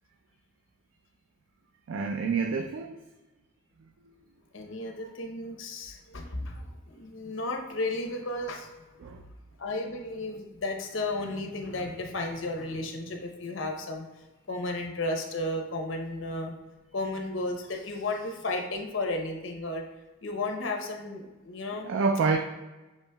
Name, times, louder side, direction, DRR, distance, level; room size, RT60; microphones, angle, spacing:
voice 1, 1.9-3.0 9.0-9.2 21.8-22.4, right 4 dB, 75° right, 4 dB, 0.3 m, -27 dB
voice 2, 4.5-8.7 9.6-14.1 14.5-16.5 16.9-19.8 20.2-21.9, left 2 dB, 70° left, 3 dB, 0.7 m, -33 dB
7.0 x 3.1 x 2.2 m, 1.1 s
head